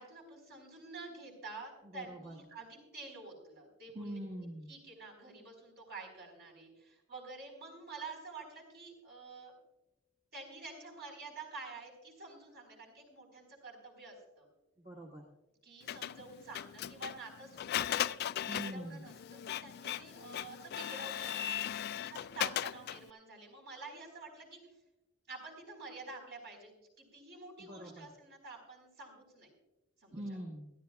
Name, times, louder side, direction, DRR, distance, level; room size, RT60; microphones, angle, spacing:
voice 1, 0.0-4.2 4.7-9.5 10.3-14.5 15.6-18.1 18.4-24.6 25.3-29.5 30.0-30.4, right 3 dB, 55° right, 0 dB, 4.4 m, -49 dB
voice 2, 1.9-2.4 3.9-4.7 14.8-15.2 18.5-19.1 27.6-28.1 30.1-30.7, equal, 35° right, -2 dB, 1.5 m, -43 dB
Printer, 15.9-23.1, left 11 dB, 50° left, 0.3 m, -38 dB
21.5 x 13.5 x 2.3 m, 0.98 s
head